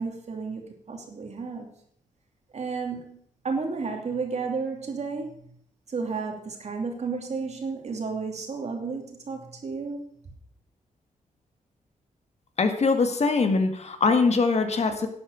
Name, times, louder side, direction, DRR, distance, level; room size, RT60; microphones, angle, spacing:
voice 1, 0.0-1.7 2.5-3.2 3.4-5.5 5.9-10.0, right 4 dB, 55° right, 3 dB, 2.8 m, -32 dB
voice 2, 12.6-15.1, left 4 dB, 55° left, 6 dB, 1.9 m, -22 dB
11.5 x 8.5 x 6.4 m, 0.64 s
cardioid pair, 100°, 14 cm